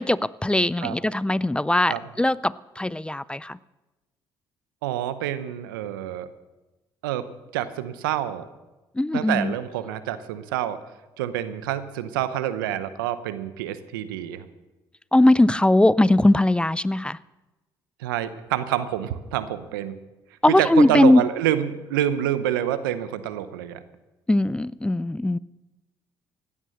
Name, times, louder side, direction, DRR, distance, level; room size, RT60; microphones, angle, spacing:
voice 1, 0.0-3.6 9.0-9.5 15.1-17.2 20.4-21.2 24.3-25.4, left 1 dB, 10° left, 20 dB, 0.4 m, -20 dB
voice 2, 4.8-6.3 7.0-7.3 7.5-8.5 9.1-10.8 11.2-14.5 18.0-20.0 20.5-23.8, right 11 dB, 90° right, 13 dB, 0.8 m, -27 dB
15.5 x 11.0 x 6.5 m, 1.1 s
hypercardioid pair, 55°, 11 cm